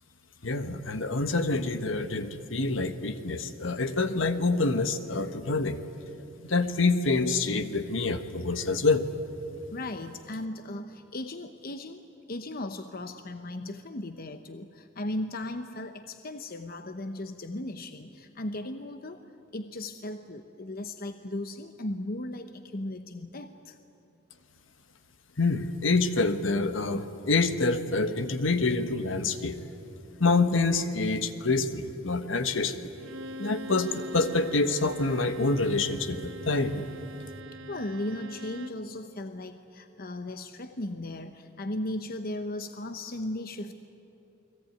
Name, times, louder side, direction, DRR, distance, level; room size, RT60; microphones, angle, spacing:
voice 1, 0.4-5.8 6.4-9.1 25.4-29.6 30.2-32.9 33.4-36.9, left 3 dB, 70° left, 10 dB, 1.5 m, -26 dB
voice 2, 9.7-12.0 12.3-19.2 19.5-23.8 37.7-43.8, left 1 dB, 50° left, 8 dB, 0.9 m, -36 dB
Bowed string instrument, 32.9-38.9, right 1 dB, 65° right, 1.1 m, -43 dB
29.0 x 21.0 x 9.4 m, 2.9 s
head